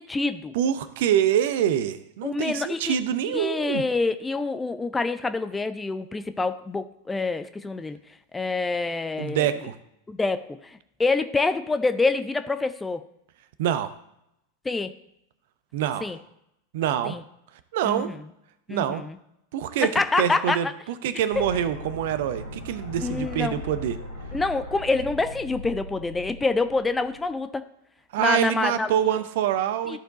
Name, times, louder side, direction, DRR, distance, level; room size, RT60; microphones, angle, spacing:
voice 1, 0.0-0.5 2.2-3.0 3.3-8.0 8.3-9.5 10.1-13.0 14.6-14.9 16.0-16.2 17.0-17.2 17.8-18.2 18.7-19.2 19.8-20.7 23.0-23.6 24.3-27.6 28.2-29.2 29.9-30.0, left 3 dB, 10° left, 10 dB, 0.4 m, -26 dB
voice 2, 0.5-3.8 9.2-9.8 13.6-13.9 15.7-16.1 16.7-17.2 17.7-18.1 18.7-19.0 19.5-19.9 20.2-24.0 28.1-30.0, right 10 dB, 55° right, 12 dB, 0.6 m, -25 dB
sound 1, 21.3-27.3, left 1 dB, 85° left, 3.7 m, -39 dB
13.0 x 4.5 x 3.9 m, 0.78 s
figure-of-eight pair, 90°, 0 cm